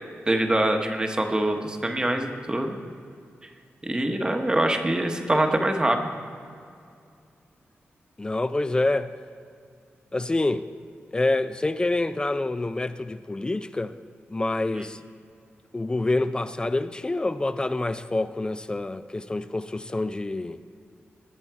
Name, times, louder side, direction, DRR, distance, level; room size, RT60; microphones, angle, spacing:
voice 1, 0.3-2.8 3.8-6.0 14.7-14.9, right 1 dB, 20° right, 0.9 m, -24 dB
voice 2, 8.2-9.1 10.1-10.6 11.1-13.9 14.3-15.0 15.7-20.6, left 2 dB, 20° left, 0.4 m, -27 dB
19.5 x 7.0 x 4.6 m
wide cardioid pair, 130°, 4 cm